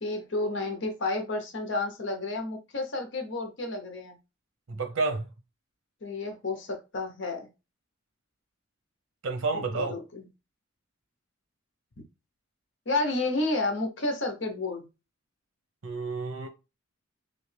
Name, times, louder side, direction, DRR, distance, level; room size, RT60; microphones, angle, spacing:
voice 1, 0.0-4.2 6.0-7.5 9.5-10.3 12.9-14.8, left 2 dB, 60° left, 0.9 m, -31 dB
voice 2, 4.7-5.3 9.2-9.9 15.8-16.5, right 3 dB, 85° right, 0.8 m, -30 dB
3.3 x 2.8 x 3.3 m
head